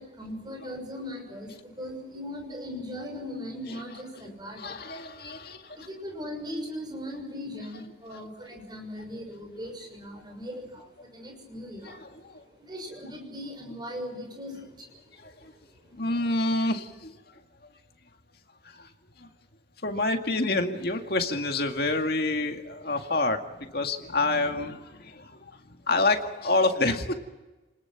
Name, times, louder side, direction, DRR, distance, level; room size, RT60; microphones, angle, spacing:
voice 1, 0.0-5.0 5.2-5.3 5.6-15.9, equal, 25° right, 2 dB, 6.5 m, -39 dB
voice 2, 4.5-5.9 11.8-12.4 15.2-15.5 15.9-17.4 18.6-18.9 19.2-19.3 19.8-27.1, left 2 dB, 55° left, 4 dB, 2.2 m, -28 dB
30.0 x 20.5 x 6.0 m, 1.1 s
head